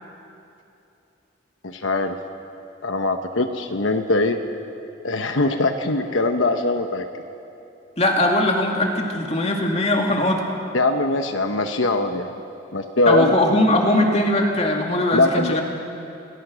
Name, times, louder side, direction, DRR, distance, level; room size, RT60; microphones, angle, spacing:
voice 1, 1.6-2.2 2.8-4.4 5.0-7.0 10.7-12.3 12.7-13.3 15.1-15.6, left 2 dB, 85° left, 6 dB, 1.1 m, -21 dB
voice 2, 8.0-10.4 13.1-15.6, left 1 dB, 35° left, 1 dB, 2.5 m, -20 dB
28.0 x 18.5 x 6.4 m, 2.7 s
head